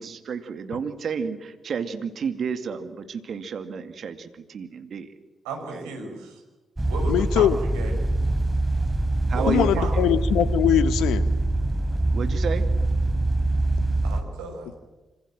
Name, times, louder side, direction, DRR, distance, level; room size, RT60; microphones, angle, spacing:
voice 1, 0.0-5.1 5.7-5.9 9.3-9.7 12.1-12.7, right 6 dB, 60° right, 9 dB, 2.3 m, -31 dB
voice 2, 5.4-6.4 6.9-7.9 9.3-10.0 14.0-14.8, right 3 dB, 80° right, 3 dB, 5.9 m, -34 dB
sound 1, 6.8-14.2, right 2 dB, 15° right, 3.6 m, -24 dB
voice 3, 7.1-7.6 9.5-11.2, left 11 dB, 70° left, 14 dB, 1.1 m, -21 dB
27.0 x 26.0 x 7.7 m, 1.1 s
hypercardioid pair, 40°, 0 cm